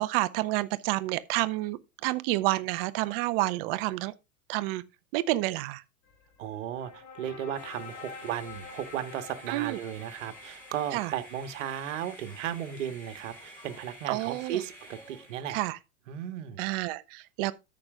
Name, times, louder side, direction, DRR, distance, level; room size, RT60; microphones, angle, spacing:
voice 1, 0.0-4.1 4.5-4.8 5.1-5.8 9.5-9.8 10.9-11.1 14.1-14.6 15.5-15.8 16.6-17.5, right 18 dB, 45° right, 1.0 m, -29 dB
sound 1, 6.0-12.0, left 5 dB, 50° left, 3.4 m, -48 dB
voice 2, 6.4-15.6 16.1-16.6, right 10 dB, 60° right, 1.6 m, -35 dB
sound 2, 7.5-15.6, equal, 20° left, 7.4 m, -50 dB
13.5 x 6.2 x 3.7 m
hypercardioid pair, 100°, 42 cm